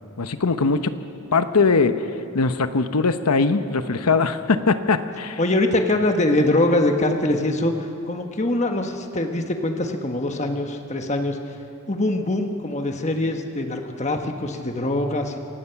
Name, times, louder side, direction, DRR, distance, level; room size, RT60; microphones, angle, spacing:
voice 1, 0.2-0.9 1.3-1.9 2.3-5.4, left 4 dB, 90° left, 10 dB, 1.0 m, -20 dB
voice 2, 5.4-11.4 11.9-15.4, left 1 dB, 30° left, 4 dB, 1.3 m, -23 dB
26.5 x 17.0 x 5.9 m, 2.6 s
head